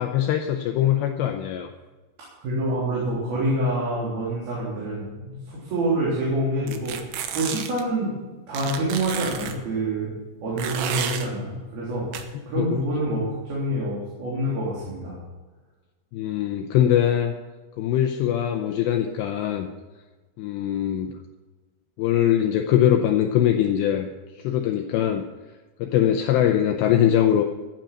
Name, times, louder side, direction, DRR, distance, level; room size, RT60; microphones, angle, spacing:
voice 1, 0.0-1.7 12.6-12.7 16.1-17.3 17.8-19.7 20.4-21.2 22.0-24.1 24.4-25.3 25.8-27.4, left 10 dB, 80° left, 5 dB, 2.5 m, -22 dB
voice 2, 2.4-8.1 8.5-10.1 10.4-15.1, right 1 dB, 50° right, -6 dB, 5.0 m, -27 dB
sound 1, 6.7-7.8 8.5-9.5 10.6-11.3 12.1-12.2, right 8 dB, 80° right, 2.1 m, -31 dB
14.5 x 9.0 x 6.0 m, 1.3 s
omnidirectional pair, 5.7 m